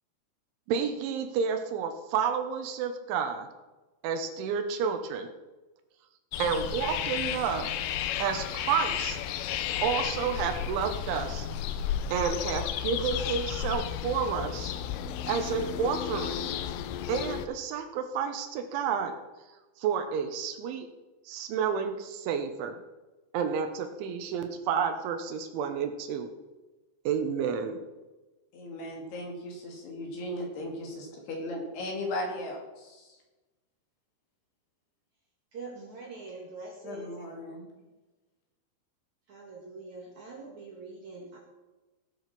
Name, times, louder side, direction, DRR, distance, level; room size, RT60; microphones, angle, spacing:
voice 1, 0.7-3.5 4.0-5.3 6.4-7.7 8.2-9.2 9.8-11.5 12.1-14.7 15.3-16.6 17.1-19.2 19.8-20.9 21.3-22.8 23.3-26.3 27.1-27.8, right 7 dB, 80° right, 7 dB, 3.5 m, -30 dB
sound 1, 6.3-17.5, left 10 dB, 90° left, 3.3 m, -33 dB
voice 2, 28.5-33.1 36.8-37.6, left 1 dB, 60° left, 0 dB, 4.3 m, -37 dB
voice 3, 35.5-37.3 39.3-41.4, right 3 dB, 50° right, -1 dB, 2.5 m, -44 dB
18.0 x 7.8 x 6.0 m, 1.1 s
omnidirectional pair, 5.5 m